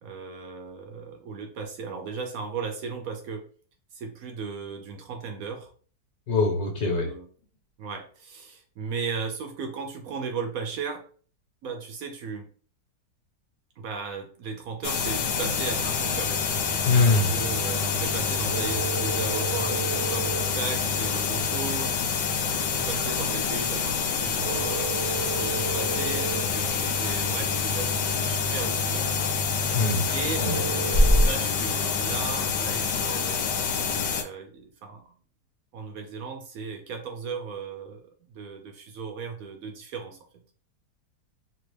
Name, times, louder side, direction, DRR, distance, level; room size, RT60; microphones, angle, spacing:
voice 1, 0.0-3.5 3.9-5.7 6.8-7.3 7.8-11.1 11.6-12.5 13.8-16.4 17.0-22.0 22.6-25.0 25.4-29.1 30.1-33.8 34.2-35.1 35.7-38.0 38.3-40.2, right 5 dB, 70° right, 4 dB, 0.9 m, -36 dB
voice 2, 6.3-7.1 16.9-17.3 29.7-30.1 30.4-30.6, left 3 dB, 65° left, 2 dB, 1.3 m, -22 dB
sound 1, 14.8-34.2, left 5 dB, 85° left, 1.2 m, -27 dB
sound 2, 18.5-20.4 24.4-26.4 30.4-31.3, right 5 dB, 25° left, 0.6 m, -34 dB
sound 3, 23.3-31.5, equal, 40° right, 0.5 m, -30 dB
3.0 x 2.5 x 3.2 m, 0.42 s
omnidirectional pair, 1.8 m